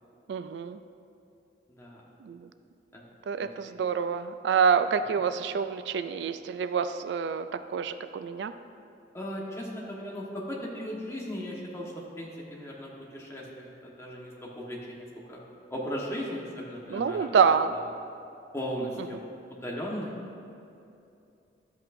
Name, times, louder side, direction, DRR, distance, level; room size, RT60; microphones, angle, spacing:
voice 1, 0.3-0.8 2.3-2.4 3.3-8.5 16.9-17.7, right 6 dB, 75° right, 11 dB, 0.3 m, -27 dB
voice 2, 1.7-2.0 2.9-3.0 3.4-3.7 5.1-5.2 9.1-15.4 15.7-17.3 17.7-17.8 18.5-19.2 19.5-20.1, equal, 15° left, -4 dB, 1.3 m, -37 dB
12.0 x 8.3 x 2.6 m, 2.7 s
head